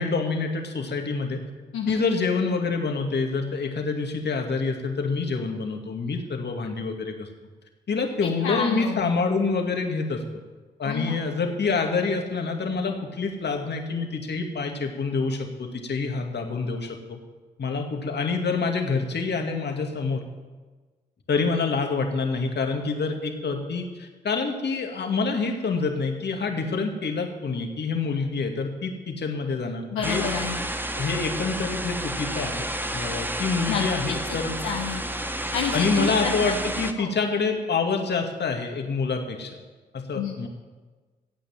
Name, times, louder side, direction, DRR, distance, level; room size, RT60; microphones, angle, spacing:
voice 1, 0.0-1.4 1.9-7.3 7.9-10.2 10.8-17.2 17.6-20.2 21.3-30.2 30.9-32.5 32.9-34.5 35.7-39.5 39.9-40.5, left 4 dB, 55° left, 3 dB, 2.4 m, -27 dB
voice 2, 8.2-9.1 10.8-11.2 29.9-30.6 33.7-33.8 34.6-35.0 35.5-36.5 37.0-37.1 40.1-40.5, left 7 dB, 80° left, -1 dB, 1.3 m, -29 dB
sound 1, 30.0-36.9, right 1 dB, 10° right, 1.3 m, -30 dB
15.0 x 8.8 x 7.4 m, 1.3 s
hypercardioid pair, 40°, 21 cm